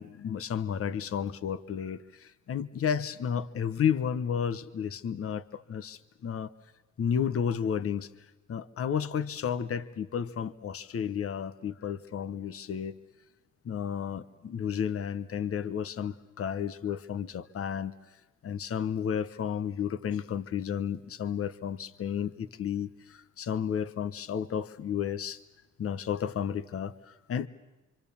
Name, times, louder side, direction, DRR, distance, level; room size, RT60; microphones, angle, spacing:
voice 1, 0.0-6.5 7.0-8.1 8.5-13.0 13.6-17.9 18.4-25.4 25.8-27.5, left 8 dB, 50° left, 15 dB, 1.0 m, -32 dB
26.5 x 25.0 x 7.1 m, 1.2 s
cardioid pair, 90°, 30 cm